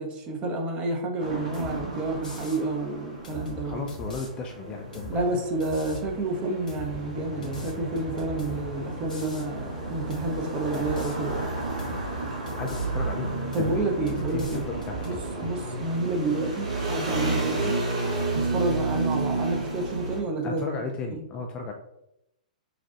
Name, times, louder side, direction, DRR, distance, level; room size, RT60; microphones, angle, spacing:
voice 1, 0.0-3.8 5.1-11.5 13.5-14.7 15.1-17.7 18.3-20.8 21.1-21.2, right 2 dB, 25° right, 2 dB, 0.8 m, -29 dB
sound 1, 1.2-20.2, right 3 dB, 60° right, 1.3 m, -32 dB
sound 2, 1.5-1.8 2.2-2.6 3.2-4.3 4.9-5.2 5.6-6.1 6.7-6.9 7.4-8.7 9.1-9.5 10.1-10.4 10.7-11.2 11.8-12.1 12.5-12.9 13.5-13.8 14.1-15.2, left 1 dB, 80° left, 1.3 m, -41 dB
voice 2, 3.6-5.4 12.6-13.3 13.6-13.9 14.3-14.9 15.4-15.5 20.4-21.7, left 4 dB, 25° left, 3 dB, 0.4 m, -35 dB
sound 3, 6.8-16.2, equal, 85° right, 1.3 m, -43 dB
5.9 x 2.4 x 2.5 m, 0.84 s
figure-of-eight pair, 110°, 4 cm